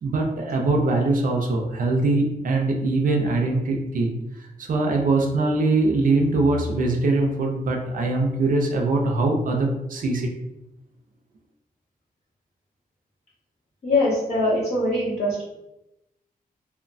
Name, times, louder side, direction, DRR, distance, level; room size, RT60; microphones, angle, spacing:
voice 1, 0.0-4.1 4.6-10.3, right 2 dB, 60° right, 1 dB, 0.4 m, -22 dB
voice 2, 13.8-15.4, left 1 dB, 40° left, -8 dB, 1.4 m, -22 dB
3.0 x 2.1 x 2.5 m, 0.90 s
wide cardioid pair, 120°, 16 cm